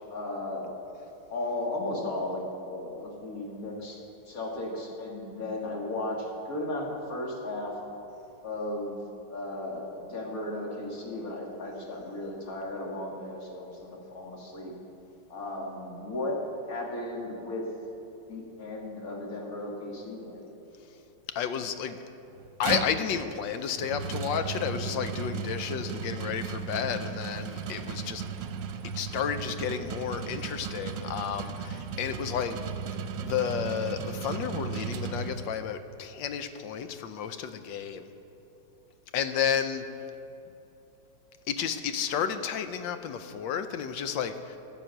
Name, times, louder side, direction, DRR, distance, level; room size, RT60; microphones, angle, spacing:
voice 1, 0.1-0.8 1.3-4.0 4.3-7.7 8.4-9.0 9.3-14.7 15.3-16.4 16.7-17.7 18.3-20.4, left 2 dB, 50° left, -1 dB, 2.2 m, -35 dB
voice 2, 21.3-22.0 22.6-28.2 28.8-32.6 33.2-38.1 39.1-39.9 41.5-44.6, left 8 dB, 85° left, 10 dB, 1.4 m, -32 dB
sound 1, 22.3-35.8, right 6 dB, 80° right, 1.4 m, -36 dB
14.5 x 7.7 x 6.4 m, 2.9 s
omnidirectional pair, 2.0 m